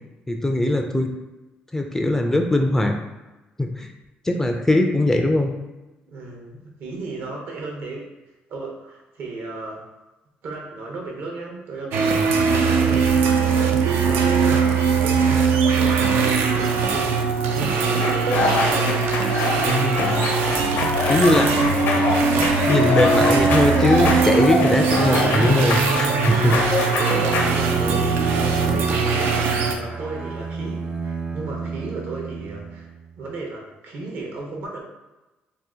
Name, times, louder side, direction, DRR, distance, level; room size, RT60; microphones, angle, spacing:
voice 1, 0.3-1.1 1.7-2.9 3.6-3.9 4.3-5.5 19.6-20.2 21.1-21.4 22.6-26.6, left 1 dB, 10° left, 3 dB, 0.3 m, -20 dB
voice 2, 6.0-8.1 8.5-9.9 10.4-18.3 20.8-21.6 26.3-32.9 33.2-34.8, right 3 dB, 70° right, -1 dB, 0.9 m, -35 dB
sound 1, 11.9-29.7, right 5 dB, 85° right, 0.4 m, -21 dB
sound 2, 18.0-27.5, left 3 dB, 70° left, 0.6 m, -24 dB
Bowed string instrument, 27.2-33.0, right 4 dB, 40° right, 0.6 m, -29 dB
2.7 x 2.4 x 3.6 m, 1.1 s
cardioid pair, 105°, 4 cm